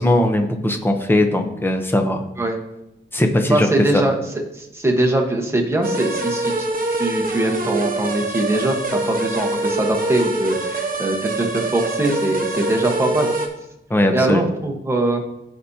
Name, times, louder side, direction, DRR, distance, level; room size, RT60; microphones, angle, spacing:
voice 1, 0.0-2.2 3.1-3.7 3.9-4.0 13.9-14.5, left 1 dB, 10° left, 5 dB, 0.8 m, -19 dB
voice 2, 3.5-4.2 4.5-6.7 7.0-13.3 14.1-15.2, right 1 dB, 10° right, 0 dB, 1.2 m, -22 dB
sound 1, 5.8-13.5, right 2 dB, 45° right, 1.1 m, -24 dB
14.5 x 5.1 x 2.8 m, 0.86 s
wide cardioid pair, 150°, 21 cm